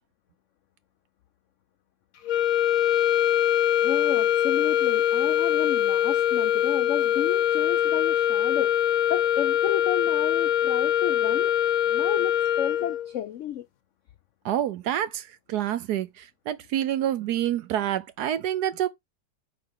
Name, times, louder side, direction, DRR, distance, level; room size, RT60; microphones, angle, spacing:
sound 1, 2.2-13.1, left 10 dB, 60° left, 1.1 m, -23 dB
voice 1, 3.8-8.7 9.1-11.5 11.9-13.7, left 10 dB, 85° left, 0.6 m, -32 dB
voice 2, 14.4-18.9, right 11 dB, 70° right, 1.1 m, -27 dB
5.0 x 4.3 x 5.6 m
omnidirectional pair, 2.0 m